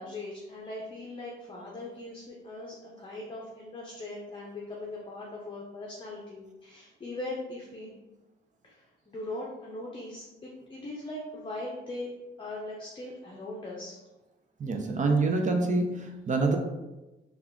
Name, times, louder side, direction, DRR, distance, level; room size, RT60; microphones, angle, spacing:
voice 1, 0.0-7.9 8.6-12.1 12.4-14.0, left 2 dB, 25° left, -3 dB, 0.7 m, -40 dB
voice 2, 14.6-16.6, right 3 dB, 40° right, 4 dB, 0.6 m, -26 dB
3.5 x 2.4 x 3.6 m, 1.1 s
cardioid pair, 90°, 20 cm